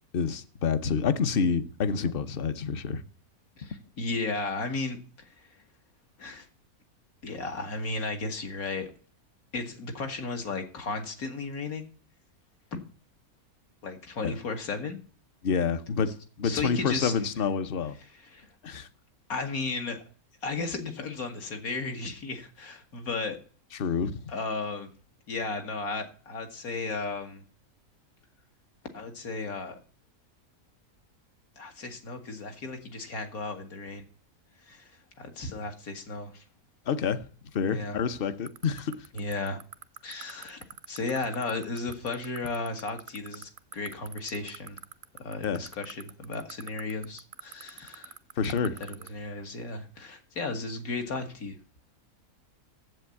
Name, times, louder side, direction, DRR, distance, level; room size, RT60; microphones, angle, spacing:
voice 1, 0.1-3.0 14.2-14.4 15.4-18.0 18.6-18.9 23.7-24.2 36.9-37.3 37.5-39.1 45.4-45.6 48.4-48.8, left 6 dB, 45° left, 0.8 m, -28 dB
voice 2, 3.6-5.0 6.2-6.5 7.2-8.9 9.5-11.9 12.7-12.8 13.8-15.0 16.4-17.3 18.2-18.5 19.3-20.0 20.4-23.4 24.3-24.9 25.3-27.4 28.9-29.8 31.6-34.1 34.6-34.9 35.2-36.4 37.7-38.0 39.1-39.6 40.0-40.6 40.9-44.8 45.2-48.1 48.8-51.6, left 3 dB, 70° left, 2.1 m, -34 dB
sound 1, 38.5-49.1, right 8 dB, 55° right, 0.6 m, -41 dB
7.8 x 7.7 x 8.3 m
omnidirectional pair, 1.6 m